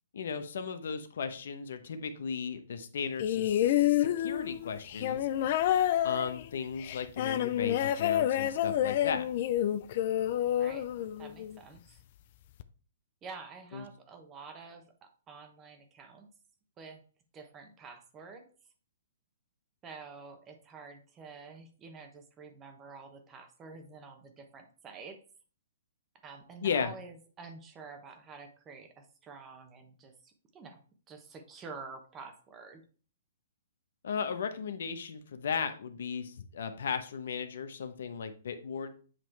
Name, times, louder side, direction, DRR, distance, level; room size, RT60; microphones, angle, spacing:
voice 1, 0.1-5.3 6.0-9.2 13.7-13.8 26.6-26.9 34.0-38.9, left 6 dB, 70° left, 9 dB, 0.9 m, -36 dB
sound 1, 3.2-11.6 12.6-12.7, left 12 dB, 50° left, 0.5 m, -29 dB
voice 2, 10.6-12.0 13.2-16.3 16.8-17.0 17.3-18.4 19.8-25.2 26.2-30.8 31.1-32.8, right 4 dB, 20° right, 6 dB, 1.0 m, -48 dB
7.7 x 3.1 x 4.5 m, 0.40 s
hypercardioid pair, 140°, 0 cm